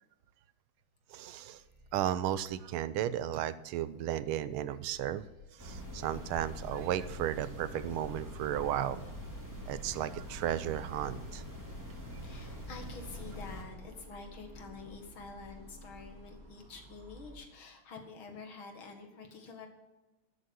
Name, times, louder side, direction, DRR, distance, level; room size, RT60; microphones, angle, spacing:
voice 1, 1.1-1.6 1.9-5.2 5.6-9.0 9.7-11.4, right 11 dB, 90° right, 14 dB, 1.5 m, -34 dB
sound 1, 1.5-3.7 4.7-6.9 7.9-10.2 11.0-13.2 14.2-16.4, left 5 dB, 20° left, 1.8 m, -62 dB
sound 2, 5.6-13.6, equal, 10° right, 2.6 m, -44 dB
sound 3, 10.9-17.4, equal, 70° right, 2.9 m, -53 dB
voice 2, 12.2-19.7, left 4 dB, 70° left, 4 dB, 2.6 m, -48 dB
12.5 x 8.3 x 6.4 m, 1.1 s
omnidirectional pair, 2.3 m